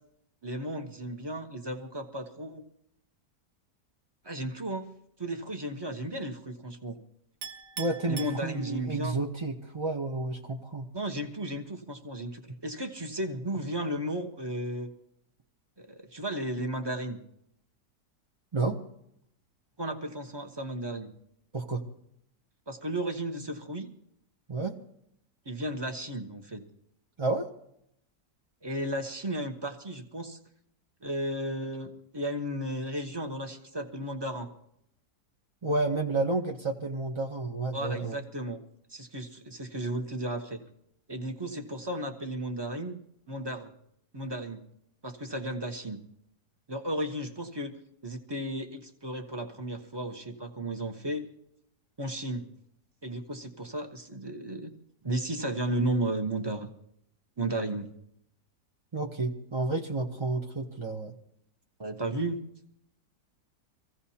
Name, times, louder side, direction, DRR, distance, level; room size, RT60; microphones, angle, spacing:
voice 1, 0.4-2.6 4.2-4.9 5.2-7.0 8.1-9.2 10.9-14.9 15.9-17.2 19.8-21.1 22.7-23.9 25.4-26.6 28.6-30.4 31.0-34.5 37.7-38.6 38.9-40.6 41.1-43.0 43.3-43.7 44.1-44.6 45.0-46.0 46.7-47.8 48.0-51.2 52.0-52.4 53.0-54.7 55.0-56.7 57.4-57.9 61.8-62.4, right 1 dB, 20° right, 5 dB, 0.8 m, -34 dB
Chink clink, 7.4-9.1, right 6 dB, 85° right, 1.8 m, -42 dB
voice 2, 7.8-10.9 18.5-18.8 21.5-21.8 24.5-24.8 27.2-27.5 35.6-38.2 58.9-61.1, right 3 dB, 40° right, 1 dB, 0.4 m, -30 dB
25.0 x 15.5 x 2.8 m, 0.74 s
omnidirectional pair, 1.8 m